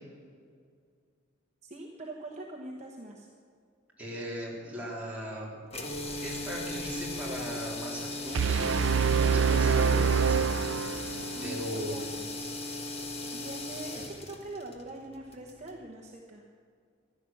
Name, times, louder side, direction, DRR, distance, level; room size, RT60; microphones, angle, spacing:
voice 1, 1.6-3.3 11.3-12.1 13.3-16.4, right 2 dB, 35° right, 0 dB, 1.1 m, -43 dB
voice 2, 4.0-5.6 6.2-10.5 11.4-12.0, equal, 10° right, -5 dB, 3.6 m, -38 dB
sound 1, 5.7-15.8, left 2 dB, 30° left, 1.5 m, -38 dB
sound 2, 8.3-11.4, right 6 dB, 85° right, 0.5 m, -25 dB
15.0 x 12.0 x 7.2 m, 2.2 s
head